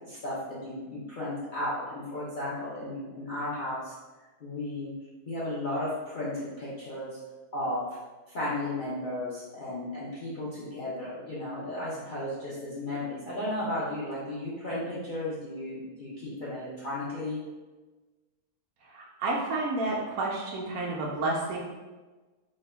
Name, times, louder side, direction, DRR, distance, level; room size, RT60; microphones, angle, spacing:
voice 1, 0.0-3.9 4.4-4.9 5.3-7.2 7.5-7.8 8.3-17.4, left 1 dB, 50° left, -10 dB, 0.6 m, -34 dB
voice 2, 18.8-21.6, right 2 dB, 70° right, -2 dB, 1.0 m, -30 dB
4.2 x 2.8 x 2.2 m, 1.2 s
omnidirectional pair, 1.6 m